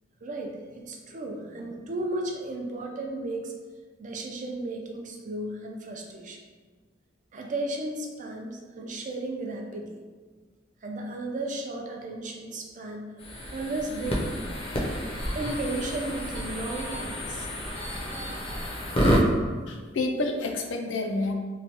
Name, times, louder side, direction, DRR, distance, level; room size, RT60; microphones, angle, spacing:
voice 1, 0.2-3.5 4.0-6.4 7.3-10.0 10.8-13.1 13.5-14.2 15.3-17.5, right 2 dB, 40° right, 1 dB, 0.4 m, -34 dB
sound 1, 13.2-19.2, equal, 30° left, 0.5 m, -29 dB
voice 2, 19.7-21.3, left 2 dB, 85° left, 3 dB, 0.4 m, -29 dB
3.0 x 2.2 x 2.8 m, 1.4 s
head